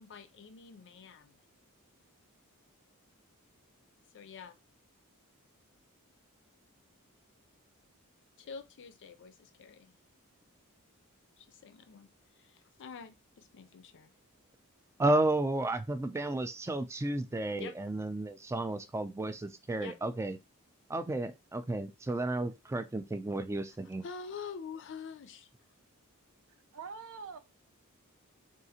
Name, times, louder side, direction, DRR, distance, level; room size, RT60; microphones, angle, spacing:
voice 1, 0.0-1.4 4.1-4.6 8.4-10.0 11.4-12.1 12.3-14.1 17.6-17.8 19.8-20.0 24.0-25.5, left 5 dB, 55° left, 0.4 m, -46 dB
voice 2, 15.0-20.4 20.9-24.0, right 2 dB, 10° right, 0.3 m, -32 dB
voice 3, 26.7-27.4, right 5 dB, 65° right, 0.6 m, -43 dB
3.7 x 2.4 x 2.8 m
head